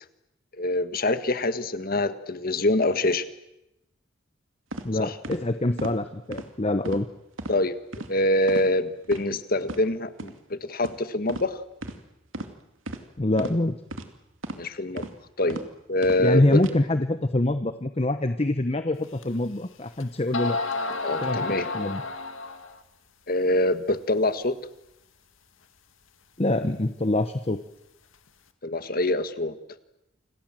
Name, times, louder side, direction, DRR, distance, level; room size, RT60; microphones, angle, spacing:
voice 1, 0.6-3.2 5.0-5.1 7.5-7.8 8.1-11.6 14.5-15.1 15.4-15.6 15.9-16.6 21.0-21.7 23.3-24.5 28.6-29.5, left 1 dB, 45° left, 11 dB, 1.6 m, -25 dB
sound 1, 4.7-4.9 5.2-5.4 5.8-6.0 6.3-6.5 6.8-7.1 7.4-7.5 7.9-8.1 8.5-8.7 9.0-9.2 9.6-9.8 10.2-10.3 10.8-11.0 11.3-11.5 11.8-12.0 12.3-12.5 12.9-13.0 13.4-13.5 13.9-14.1 14.4-14.6 15.0-15.1 15.5-15.6 16.0-16.2 16.6-16.7, right 1 dB, 80° right, 2.5 m, -35 dB
voice 2, 4.8-7.1 13.2-13.8 16.2-20.6 21.2-21.4 21.7-22.0 26.4-27.6, left 1 dB, 30° left, 9 dB, 0.9 m, -25 dB
sound 2, 19.2-19.3 20.0-20.1 20.3-22.8, left 3 dB, 80° left, 2.3 m, -30 dB
29.5 x 26.5 x 7.6 m, 0.89 s
head